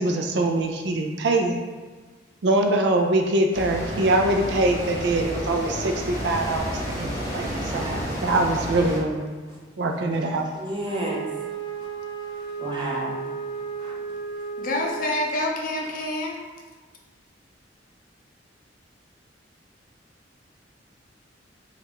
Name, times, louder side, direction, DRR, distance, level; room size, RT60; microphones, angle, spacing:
voice 1, 0.0-1.6 2.4-7.1 7.3-7.8 8.2-9.3 9.8-10.5, right 2 dB, 65° right, 4 dB, 0.4 m, -23 dB
sound 1, 3.5-9.0, equal, 25° left, 1.3 m, -31 dB
voice 2, 7.3-8.3 9.5-9.6 10.5-11.3 11.8-13.2 13.8-13.9, right 1 dB, 25° right, -4 dB, 0.8 m, -33 dB
Wind instrument woodwind instrument, 10.8-15.4, right 5 dB, 85° right, 0.8 m, -34 dB
voice 3, 14.6-16.4, left 1 dB, 50° left, -1 dB, 0.6 m, -27 dB
4.1 x 2.4 x 3.5 m, 1.4 s
head